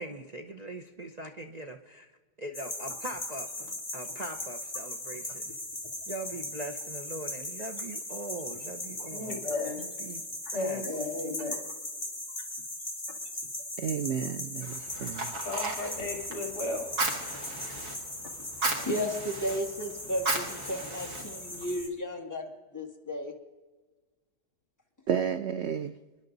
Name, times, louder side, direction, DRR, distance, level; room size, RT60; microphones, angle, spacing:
voice 1, 0.0-2.1 2.4-5.5 6.1-9.4 10.0-10.3 10.5-10.8, right 2 dB, 35° right, 2 dB, 0.7 m, -41 dB
sound 1, 2.5-21.9, left 1 dB, 25° left, 2.4 m, -39 dB
voice 2, 9.1-9.9 10.5-11.6 15.4-16.9, left 2 dB, 70° left, 2 dB, 3.4 m, -34 dB
voice 3, 13.8-15.3 25.1-25.9, right 8 dB, 85° right, 10 dB, 0.5 m, -31 dB
Fire, 14.6-21.8, right 2 dB, 65° right, 2.4 m, -36 dB
voice 4, 18.8-23.3, equal, 10° left, 1 dB, 1.8 m, -34 dB
27.0 x 11.0 x 4.0 m, 1.3 s
omnidirectional pair, 1.8 m